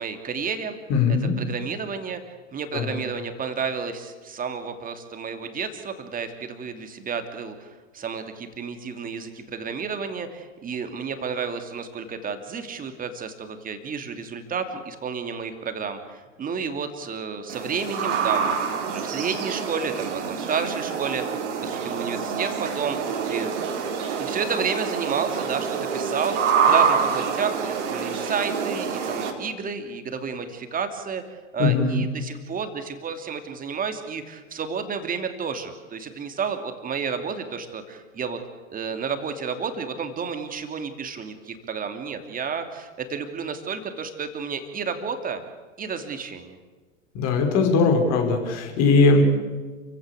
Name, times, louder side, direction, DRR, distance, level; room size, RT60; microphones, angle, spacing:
voice 1, 0.0-0.8 1.1-2.2 2.5-18.5 18.9-23.0 23.3-23.6 24.2-25.7 25.9-38.4 38.7-45.4 45.8-46.6, right 6 dB, 20° right, 7 dB, 2.8 m, -31 dB
voice 2, 0.9-1.4 2.7-3.0 31.6-32.0 47.1-49.2, left 4 dB, 40° left, 4 dB, 5.2 m, -20 dB
sound 1, 17.5-29.3, right 6 dB, 60° right, 3.9 m, -26 dB
28.5 x 16.0 x 8.6 m, 1.4 s
figure-of-eight pair, 100°, 40 cm